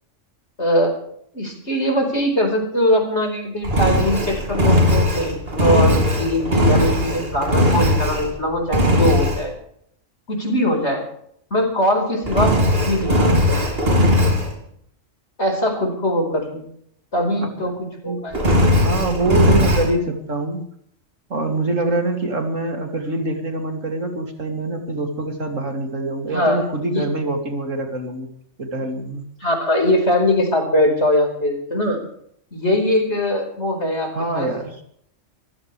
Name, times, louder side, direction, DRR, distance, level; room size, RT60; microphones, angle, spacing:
voice 1, 0.6-0.9 1.3-9.5 10.3-11.0 11.5-12.5 12.8-14.1 15.4-16.7 17.1-17.7 18.0-18.4 26.3-27.1 29.4-32.0 32.5-34.5, left 1 dB, 60° left, 4 dB, 5.2 m, -21 dB
Engine, 3.6-8.4 8.7-9.4 12.3-14.5 18.3-19.9, left 1 dB, 50° right, 3.0 m, -18 dB
voice 2, 17.4-17.7 18.0-18.5 18.7-20.7 21.3-28.3 28.6-29.2 34.1-34.8, right 2 dB, 85° right, 3 dB, 3.2 m, -25 dB
24.5 x 15.5 x 3.4 m, 0.67 s
omnidirectional pair, 1.3 m